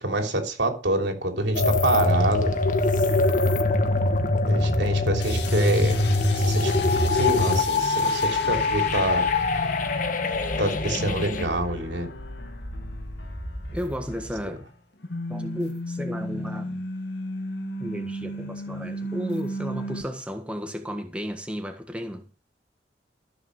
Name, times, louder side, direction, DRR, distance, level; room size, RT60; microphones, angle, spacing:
voice 1, 0.0-2.5 4.5-6.0 6.4-6.8 7.1-9.3 10.6-12.1, right 2 dB, 75° right, 3.4 m, -26 dB
sound 1, 1.5-11.5, left 2 dB, 45° left, 1.7 m, -23 dB
sound 2, 5.2-14.7 15.0-20.0, left 1 dB, 70° left, 2.3 m, -35 dB
voice 2, 13.7-14.7 15.3-16.8 17.8-22.2, equal, 5° right, 1.4 m, -33 dB
14.0 x 7.1 x 6.5 m
head